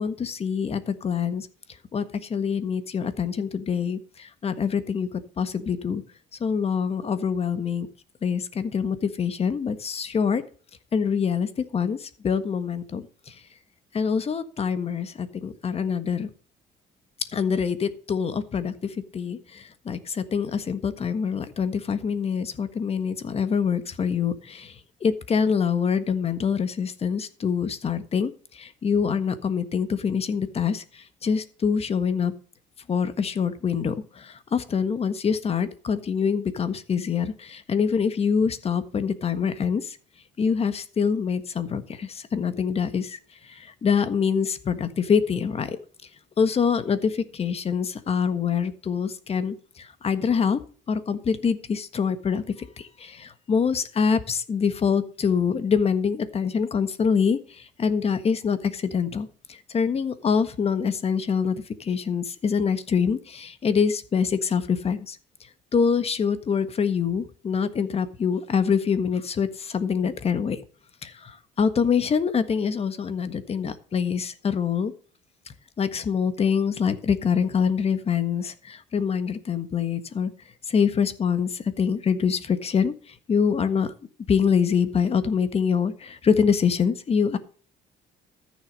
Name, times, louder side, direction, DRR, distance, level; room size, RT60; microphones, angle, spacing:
voice 1, 0.0-1.5 1.9-6.0 6.4-7.9 8.2-10.4 10.9-13.3 13.9-16.3 17.3-24.7 25.0-32.3 32.9-40.0 40.4-43.2 43.4-45.8 46.4-50.6 50.9-65.2 65.7-70.6 71.0-74.9 75.8-80.3 80.7-83.9 84.3-87.4, left 6 dB, 35° left, 11 dB, 1.5 m, -25 dB
14.0 x 6.5 x 5.3 m, 0.40 s
cardioid pair, 110°, 17 cm